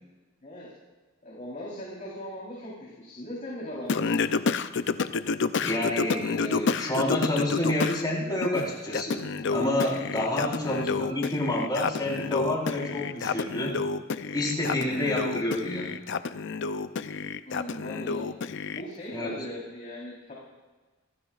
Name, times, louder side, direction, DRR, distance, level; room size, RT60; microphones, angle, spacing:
voice 1, 1.2-4.2 10.2-10.6 17.5-18.3 18.8-20.3, equal, 40° left, -6 dB, 3.9 m, -39 dB
Singing, 3.9-8.0 8.4-18.8, left 5 dB, 60° left, 0.5 m, -29 dB
voice 2, 5.6-13.8 14.3-16.0 19.1-19.4, left 1 dB, 20° left, -4 dB, 4.5 m, -29 dB
27.5 x 14.0 x 2.5 m, 1.3 s
head